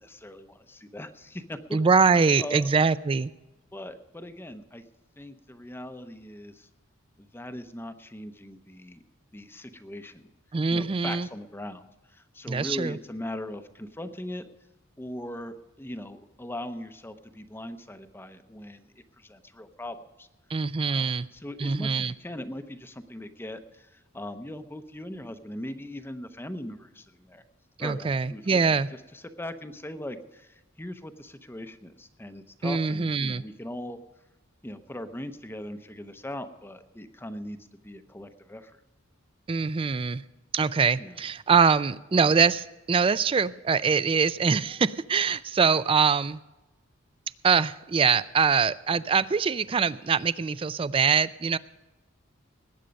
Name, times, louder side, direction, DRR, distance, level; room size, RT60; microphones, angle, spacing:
voice 1, 0.0-2.7 3.7-4.9 5.2-6.7 7.2-9.0 9.3-10.3 10.7-14.5 15.0-20.3 20.8-27.4 27.8-34.0 34.6-38.8 41.0-41.2, left 1 dB, 10° left, 9 dB, 0.7 m, -40 dB
voice 2, 1.7-3.3 10.5-11.3 12.5-13.0 20.5-21.3 21.6-22.1 27.8-28.9 32.6-33.4 39.5-40.2 40.5-46.4 47.4-51.6, right 5 dB, 25° right, 17 dB, 0.3 m, -23 dB
19.5 x 8.9 x 5.2 m, 1.1 s
head